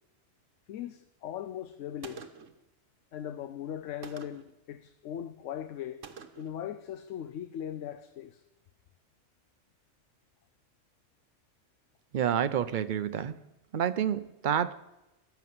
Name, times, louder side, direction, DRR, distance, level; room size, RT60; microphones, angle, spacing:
voice 1, 0.7-2.3 3.1-6.1 6.4-8.4, left 10 dB, 85° left, 1.0 m, -39 dB
Gunshot gunfire, 2.0-2.6 4.0-4.6 6.0-6.6, right 6 dB, 90° right, 1.2 m, -47 dB
voice 2, 12.1-13.4 13.7-14.7, right 9 dB, 50° right, 0.6 m, -28 dB
14.5 x 5.9 x 9.4 m
omnidirectional pair, 1.3 m